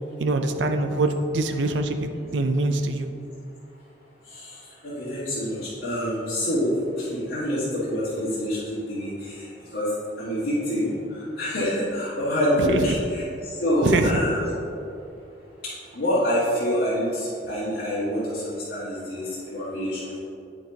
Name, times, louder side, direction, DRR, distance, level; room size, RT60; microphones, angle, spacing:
voice 1, 0.2-1.1 1.3-3.1 12.7-13.0 13.8-14.2, right 2 dB, 85° right, 6 dB, 0.5 m, -24 dB
voice 2, 4.8-6.7 7.0-9.3 9.7-9.9 10.2-10.9 11.4-14.5 15.9-20.2, equal, 70° left, -11 dB, 1.7 m, -26 dB
9.2 x 6.0 x 2.8 m, 2.6 s
head